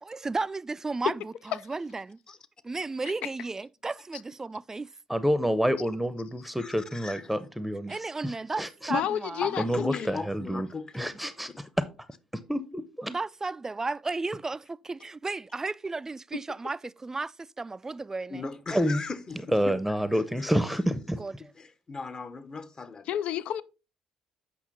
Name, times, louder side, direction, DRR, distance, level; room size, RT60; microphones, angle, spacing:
voice 1, 0.0-2.2 2.6-4.9 7.9-9.6 13.1-18.4 21.2-21.3, right 3 dB, 20° right, 0.3 m, -34 dB
voice 2, 5.1-8.9 9.6-10.7 10.9-11.9 12.3-13.1 18.7-19.0 19.5-21.2, equal, 5° right, 0.7 m, -28 dB
voice 3, 6.6-7.3 7.9-8.0 9.4-11.1 18.3-19.8 20.1-20.5 21.6-23.1, left 4 dB, 35° left, 1.0 m, -38 dB
voice 4, 8.9-10.1 23.1-23.6, left 10 dB, 65° left, 0.4 m, -30 dB
8.3 x 5.8 x 4.1 m
hypercardioid pair, 50°, 2 cm